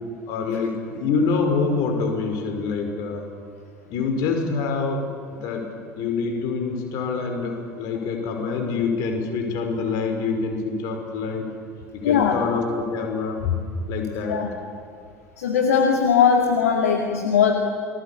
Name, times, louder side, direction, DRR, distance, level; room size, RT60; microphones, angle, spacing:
voice 1, 0.3-3.2 3.9-5.1 5.4-5.7 6.0-11.5 11.9-13.6 13.9-14.4, left 4 dB, 50° left, 4 dB, 5.4 m, -25 dB
voice 2, 12.0-12.4 14.3-14.5 15.4-17.5, left 7 dB, 70° left, 2 dB, 2.2 m, -19 dB
29.5 x 21.5 x 8.8 m, 2.2 s
figure-of-eight pair, 70°, 8 cm